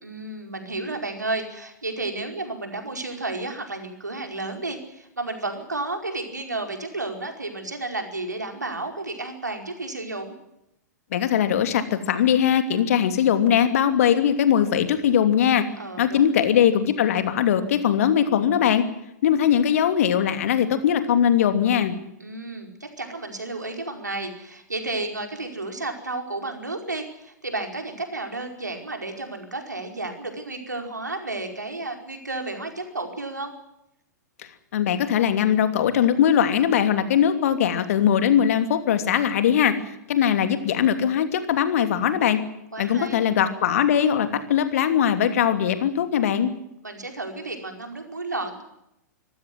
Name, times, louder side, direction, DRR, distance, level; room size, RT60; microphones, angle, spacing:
voice 1, 0.0-10.3 15.8-16.4 22.2-33.5 42.7-43.2 46.8-48.6, right 2 dB, 80° right, 5 dB, 4.9 m, -32 dB
voice 2, 11.1-15.6 16.0-18.8 19.2-22.0 34.7-39.7 40.1-42.4 42.8-46.5, left 9 dB, 55° left, 9 dB, 2.9 m, -20 dB
25.5 x 15.0 x 9.5 m, 0.83 s
figure-of-eight pair, 105°, 9 cm